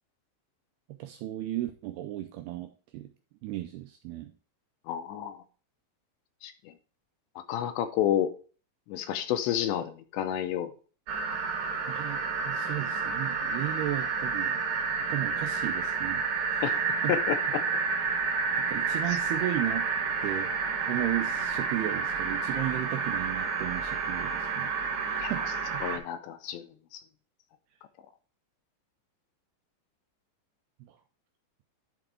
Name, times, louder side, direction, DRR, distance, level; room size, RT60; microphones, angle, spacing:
voice 1, 1.0-3.1 3.4-4.3 11.9-12.2 12.4-14.6 15.1-16.2 16.5-16.6 17.0-17.1 18.7-19.8 20.2-20.6 20.9-24.7 25.1-25.4 30.8-30.9, right 14 dB, 90° right, 5 dB, 2.3 m, -34 dB
voice 2, 4.9-5.4 6.4-6.7 7.5-8.3 8.9-10.7 16.6-17.6 25.2-25.3 25.8-26.7 26.9-27.0, left 10 dB, 80° left, 9 dB, 2.8 m, -30 dB
sound 1, 11.1-26.0, right 5 dB, 65° right, 2.1 m, -30 dB
11.5 x 4.0 x 4.7 m, 0.38 s
omnidirectional pair, 5.3 m